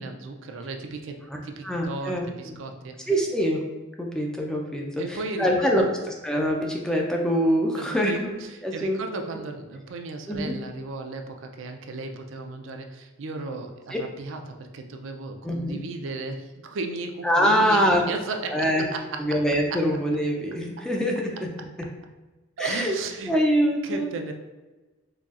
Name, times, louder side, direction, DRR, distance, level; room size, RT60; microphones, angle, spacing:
voice 1, 0.0-3.0 5.0-5.7 7.8-19.2 22.6-23.3 23.8-24.3, right 3 dB, 65° right, 4 dB, 0.4 m, -35 dB
voice 2, 1.6-2.6 3.1-3.6 4.0-9.0 10.3-10.5 13.9-14.0 15.4-15.8 17.2-18.1 18.5-18.8 19.2-21.5 22.6-22.9 23.3-24.1, equal, 5° left, 0 dB, 0.4 m, -24 dB
4.0 x 3.0 x 2.4 m, 1.2 s
head